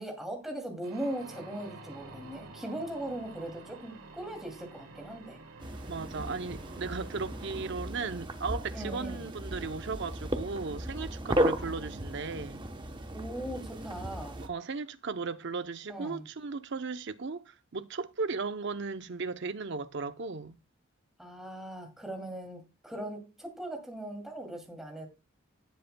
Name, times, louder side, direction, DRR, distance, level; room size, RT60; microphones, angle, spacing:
voice 1, 0.0-5.4 8.7-9.2 13.1-14.4 15.9-16.3 21.2-25.1, right 1 dB, ahead, 2.5 m, -39 dB
sound 1, 0.8-7.7, right 3 dB, 90° right, 2.1 m, -49 dB
sound 2, 5.6-14.5, right 1 dB, 20° right, 0.9 m, -35 dB
voice 2, 5.9-12.6 14.4-20.5, right 4 dB, 55° right, 0.6 m, -36 dB
17.0 x 7.8 x 2.2 m
head